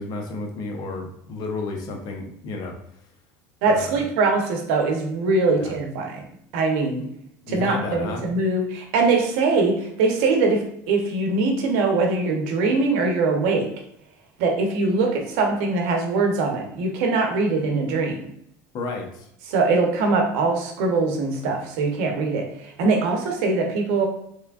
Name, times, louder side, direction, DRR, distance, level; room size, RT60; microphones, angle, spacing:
voice 1, 0.0-2.8 3.7-4.0 5.6-5.7 7.5-8.3 18.7-19.3, left 3 dB, 55° left, 2 dB, 0.8 m, -32 dB
voice 2, 3.6-6.2 6.5-7.0 7.5-10.6 10.9-13.7 14.4-18.2 19.5-24.1, right 3 dB, 75° right, 2 dB, 0.8 m, -22 dB
3.3 x 3.2 x 2.3 m, 0.73 s
supercardioid pair, 100°, 8 cm